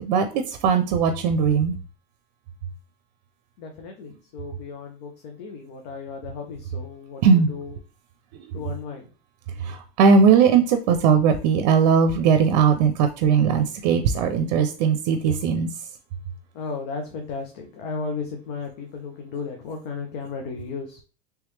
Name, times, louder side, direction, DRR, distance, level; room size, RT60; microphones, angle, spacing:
voice 1, 0.0-1.8 7.2-7.5 9.6-15.7, right 6 dB, 80° right, 8 dB, 0.5 m, -19 dB
voice 2, 3.6-7.7 8.5-9.1 16.5-21.0, left 4 dB, 75° left, 3 dB, 0.8 m, -34 dB
3.3 x 3.2 x 3.2 m, 0.36 s
supercardioid pair, 115°, 21 cm